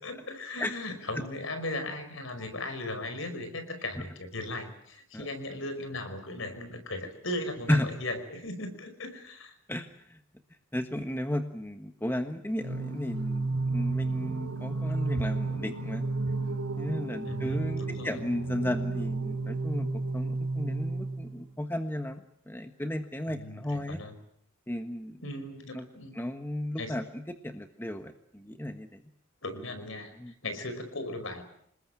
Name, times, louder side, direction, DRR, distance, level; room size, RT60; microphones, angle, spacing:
voice 1, 0.0-9.5 17.3-18.2 23.3-24.1 25.2-26.2 26.8-27.0 29.4-31.4, left 2 dB, 65° left, 9 dB, 5.2 m, -37 dB
voice 2, 9.7-10.2 10.7-16.1 16.8-19.9 20.1-24.0 24.7-25.2 25.7-25.8 26.1-28.9 30.2-30.3, left 1 dB, 10° left, 7 dB, 1.3 m, -34 dB
Singing, 12.6-21.5, right 3 dB, 80° right, 4.7 m, -32 dB
27.5 x 20.5 x 8.9 m, 0.68 s
head